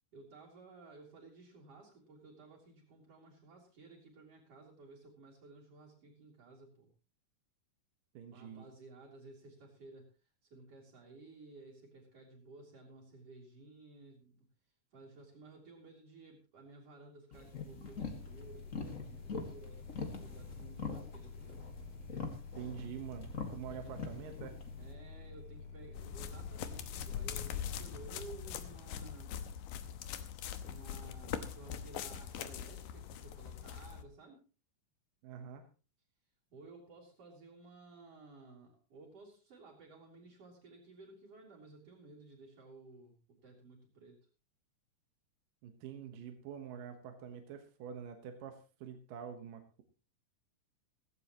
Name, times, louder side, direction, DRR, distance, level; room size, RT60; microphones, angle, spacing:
voice 1, 0.1-6.9 8.3-14.4 14.9-21.6 23.7-24.0 24.8-29.4 30.6-34.4 36.5-44.2, right 3 dB, 45° right, -6 dB, 4.5 m, -55 dB
voice 2, 8.1-8.7 22.6-24.5 35.2-35.6 45.6-49.8, right 8 dB, 75° right, 6 dB, 2.9 m, -46 dB
sound 1, 17.3-24.9, left 4 dB, 30° left, 1.5 m, -44 dB
sound 2, 17.9-28.4, left 5 dB, 45° left, 2.2 m, -50 dB
sound 3, 25.9-34.0, left 9 dB, 80° left, 2.7 m, -42 dB
17.0 x 16.0 x 3.0 m, 0.34 s
omnidirectional pair, 3.9 m